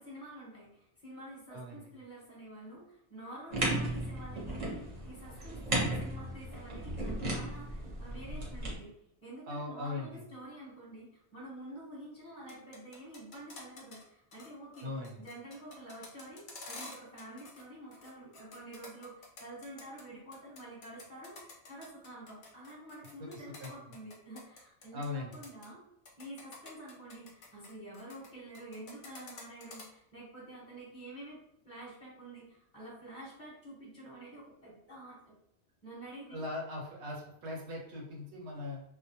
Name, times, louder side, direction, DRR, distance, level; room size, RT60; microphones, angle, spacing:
voice 1, 0.0-8.9 9.2-14.9 15.2-25.8 26.2-35.2 35.8-36.5, right 1 dB, 5° left, -6 dB, 0.9 m, -48 dB
voice 2, 1.5-1.9 9.5-10.2 14.8-15.2 23.2-23.7 24.9-25.3 36.3-38.8, left 2 dB, 80° right, -1 dB, 0.9 m, -40 dB
sound 1, 3.5-8.7, right 1 dB, 40° right, 0.7 m, -35 dB
sound 2, 12.3-14.0 14.3-14.5 14.7-17.6 17.9-20.0 20.3-25.1 25.3-25.7 26.1-28.3 28.5-29.8, left 3 dB, 55° left, 0.7 m, -49 dB
2.3 x 2.1 x 2.8 m, 0.77 s
omnidirectional pair, 1.1 m